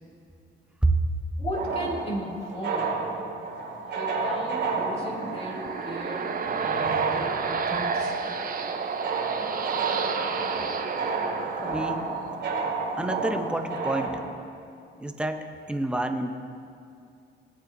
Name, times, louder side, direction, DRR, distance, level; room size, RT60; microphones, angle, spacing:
voice 1, 1.4-3.0 3.9-8.5, equal, 30° left, -3 dB, 2.8 m, -36 dB
sound 1, 1.5-14.1, right 4 dB, 65° right, 2.4 m, -31 dB
sound 2, 4.8-12.3, right 5 dB, 45° right, 0.8 m, -30 dB
voice 2, 11.6-12.1 13.0-14.2 15.0-16.4, right 2 dB, 5° right, 5 dB, 0.7 m, -28 dB
18.0 x 8.8 x 2.7 m, 2.6 s
cardioid pair, 90°, 20 cm